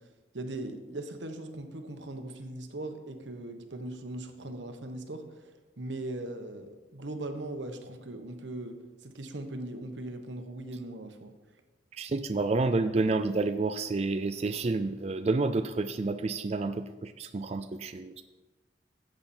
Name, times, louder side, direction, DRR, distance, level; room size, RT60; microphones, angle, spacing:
voice 1, 0.0-5.5 5.8-11.3, right 1 dB, 90° right, 6 dB, 1.3 m, -39 dB
voice 2, 12.0-18.2, right 3 dB, 35° right, 8 dB, 0.4 m, -29 dB
14.0 x 7.8 x 4.4 m, 1.2 s
head